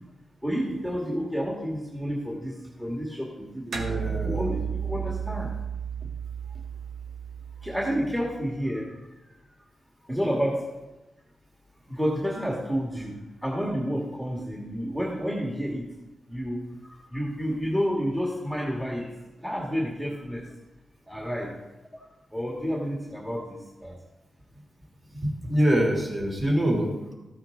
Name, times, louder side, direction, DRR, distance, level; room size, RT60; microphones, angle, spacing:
voice 1, 0.4-3.8 4.2-5.5 7.6-9.0 10.1-10.6 11.9-13.1 13.4-15.8 16.3-19.1 19.4-20.4 21.1-21.6 22.3-24.0, equal, 5° right, -2 dB, 1.9 m, -30 dB
voice 2, 3.7-4.5 25.1-27.1, equal, 30° right, -1 dB, 3.5 m, -25 dB
sound 1, 3.7-8.5, right 7 dB, 90° right, 1.3 m, -33 dB
14.5 x 8.8 x 3.8 m, 1.0 s
cardioid pair, 100°, 0 cm